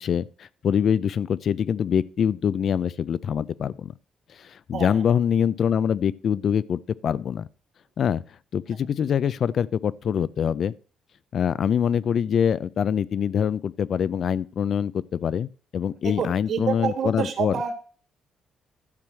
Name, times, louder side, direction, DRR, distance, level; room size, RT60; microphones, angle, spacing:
voice 1, 0.0-3.9 4.3-7.5 8.0-8.2 8.5-10.7 11.3-17.6, left 8 dB, 60° left, 0.5 m, -24 dB
voice 2, 16.0-17.7, right 7 dB, 65° right, 2.6 m, -27 dB
12.0 x 4.7 x 7.5 m
cardioid pair, 90°, 0 cm